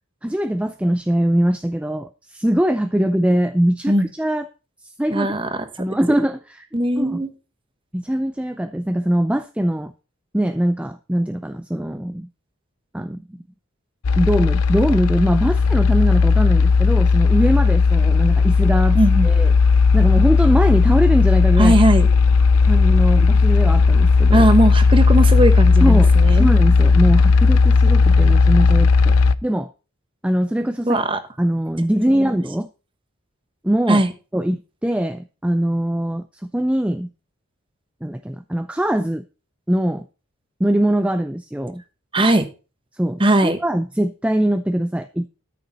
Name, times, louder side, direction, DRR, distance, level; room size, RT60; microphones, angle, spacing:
voice 1, 0.2-4.5 4.8-5.3 5.8-6.7 7.0-7.2 7.9-9.9 10.3-12.3 12.9-13.4 14.2-19.0 19.2-19.5 19.9-21.7 22.6-24.5 25.8-29.2 29.4-29.7 30.2-31.0 31.4-32.7 33.6-34.0 34.3-36.2 36.5-37.1 38.0-39.2 39.7-40.0 40.6-41.8 42.9-45.3, right 1 dB, 5° right, 9 dB, 0.4 m, -21 dB
voice 2, 5.1-5.5 5.9-6.0 6.7-7.3 18.9-19.3 21.6-22.1 24.3-26.5 30.9-31.2 32.1-32.4 33.9-34.1 42.1-42.5 43.2-43.6, right 1 dB, 25° right, 9 dB, 1.1 m, -18 dB
sound 1, 14.0-29.4, left 4 dB, 85° left, 0.5 m, -15 dB
13.0 x 6.8 x 4.1 m, 0.32 s
head